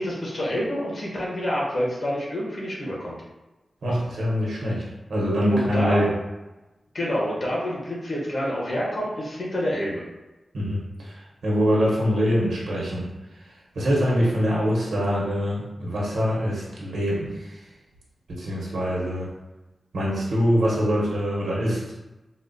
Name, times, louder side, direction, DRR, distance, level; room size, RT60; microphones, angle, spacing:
voice 1, 0.0-3.1 5.5-6.0 6.9-10.0, equal, 55° left, -5 dB, 1.0 m, -27 dB
voice 2, 3.8-4.8 5.1-6.1 10.5-13.1 13.7-17.6 18.3-19.3 19.9-21.8, equal, 85° right, -4 dB, 0.8 m, -24 dB
4.1 x 2.1 x 2.6 m, 1.0 s
wide cardioid pair, 150°, 0 cm